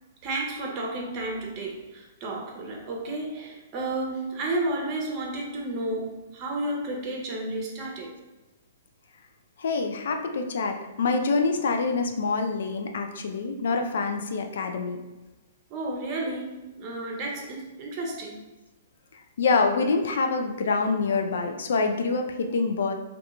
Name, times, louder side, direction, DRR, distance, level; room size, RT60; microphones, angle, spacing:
voice 1, 0.2-8.1 15.7-18.4, right 2 dB, 35° right, 0 dB, 0.7 m, -32 dB
voice 2, 9.6-15.0 19.4-22.9, left 4 dB, 70° left, 5 dB, 0.3 m, -26 dB
2.7 x 2.3 x 2.4 m, 1.1 s
hypercardioid pair, 120°, 0 cm